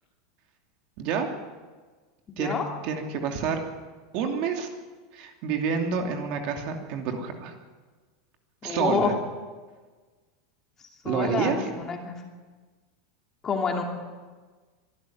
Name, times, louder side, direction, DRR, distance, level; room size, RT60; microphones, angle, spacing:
voice 1, 1.0-1.3 2.4-2.6 2.8-3.6 4.1-4.7 5.1-7.5 8.6-9.1 11.0-11.7, right 6 dB, 45° right, 4 dB, 2.8 m, -28 dB
voice 2, 2.3-2.6 8.6-9.1 11.0-12.1 13.4-13.8, left 5 dB, 20° left, 2 dB, 2.8 m, -28 dB
24.5 x 12.5 x 9.3 m, 1.4 s
supercardioid pair, 160°, 2 cm